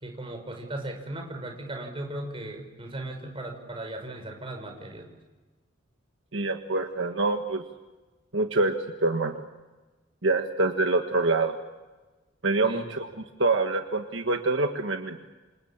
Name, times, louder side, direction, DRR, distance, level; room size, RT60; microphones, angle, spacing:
voice 1, 0.0-5.1 12.6-12.8, right 1 dB, 25° right, 4 dB, 5.8 m, -37 dB
voice 2, 6.3-7.6 8.3-8.7 9.0-9.4 10.2-11.6 12.4-13.1 13.4-15.2, right 3 dB, 65° right, 5 dB, 1.6 m, -25 dB
28.5 x 27.5 x 7.3 m, 1.2 s
head